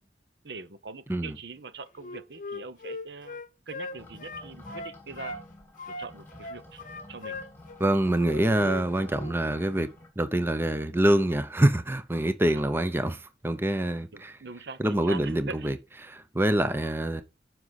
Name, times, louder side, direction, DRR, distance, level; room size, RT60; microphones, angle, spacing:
voice 1, 0.4-3.4 3.7-5.4 6.0-6.8 7.1-7.4 12.5-12.7 14.1-15.7, right 4 dB, 70° right, 0.8 m, -42 dB
Wind instrument woodwind instrument, 2.0-5.4 5.8-8.9 9.1-9.4, left 2 dB, 45° left, 0.8 m, -39 dB
sound 1, 3.9-10.1, left 1 dB, 15° left, 2.8 m, -49 dB
voice 2, 7.8-9.9 10.2-14.4 14.8-15.8 16.0-17.2, right 1 dB, 15° right, 0.6 m, -25 dB
9.8 x 6.1 x 4.1 m
head